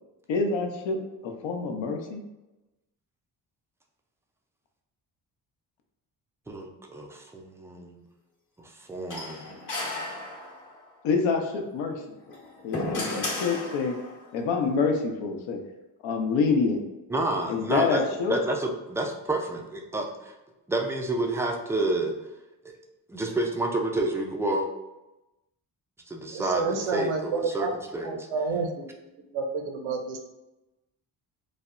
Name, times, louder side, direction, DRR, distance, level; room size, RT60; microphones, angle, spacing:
voice 1, 0.3-2.2 11.0-12.3 12.6-14.0 14.3-15.6 16.0-16.8 17.5-18.4, left 4 dB, 65° left, 3 dB, 0.6 m, -27 dB
voice 2, 6.5-8.0 8.6-9.5 17.1-20.3 20.7-22.1 22.6-22.7 23.1-24.7 26.1-27.7 27.9-28.3, right 2 dB, 5° right, 2 dB, 0.3 m, -29 dB
sound 1, 9.1-10.8 12.2-14.2, left 2 dB, 40° left, 0.9 m, -34 dB
voice 3, 26.3-27.7 28.0-28.9 29.3-30.2, right 4 dB, 70° right, 3 dB, 0.7 m, -29 dB
3.3 x 2.0 x 2.4 m, 0.99 s
hypercardioid pair, 45°, 49 cm